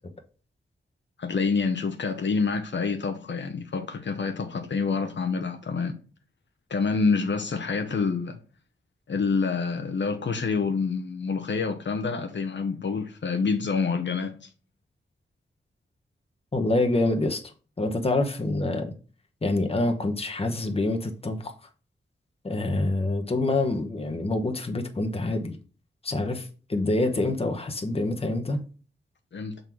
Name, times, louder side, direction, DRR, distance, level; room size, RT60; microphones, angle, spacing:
voice 1, 1.2-6.0 6.7-8.4 9.1-14.5 29.3-29.6, left 4 dB, 65° left, 0.9 m, -27 dB
voice 2, 16.5-17.4 17.8-18.9 19.4-21.5 22.4-25.6 26.0-28.6, left 2 dB, 30° left, 1.1 m, -26 dB
6.7 x 3.9 x 4.5 m
wide cardioid pair, 100°, 21 cm